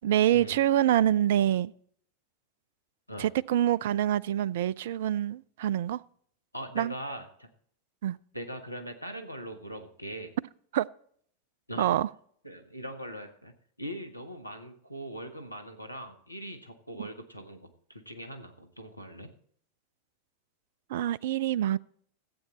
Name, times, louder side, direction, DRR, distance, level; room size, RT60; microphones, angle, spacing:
voice 1, 0.0-1.7 3.2-6.0 6.8-6.9 8.0-8.2 10.7-10.9 11.8-12.1 17.0-17.1 20.9-21.8, right 11 dB, 55° right, 0.3 m, -26 dB
voice 2, 6.5-7.5 8.3-10.4 11.7-12.0 12.4-13.5 13.8-19.3, equal, 85° left, 1.2 m, -41 dB
14.0 x 8.6 x 4.2 m
figure-of-eight pair, 90°, 0 cm